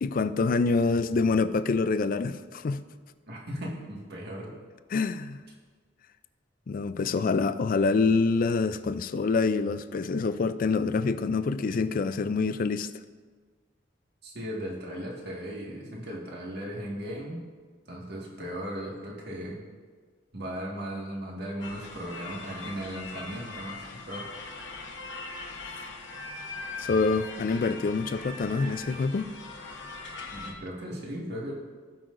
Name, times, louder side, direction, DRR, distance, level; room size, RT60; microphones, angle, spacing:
voice 1, 0.0-2.8 4.9-5.4 6.7-12.9 26.8-29.3, left 4 dB, 45° left, 12 dB, 0.4 m, -26 dB
voice 2, 3.3-4.6 7.0-7.1 7.4-7.5 14.2-17.4 17.9-19.6 20.3-24.5 30.3-31.5, equal, 60° right, -3 dB, 1.8 m, -37 dB
sound 1, 21.6-30.5, left 3 dB, 70° left, 1.2 m, -41 dB
17.0 x 5.7 x 2.6 m, 1.5 s
head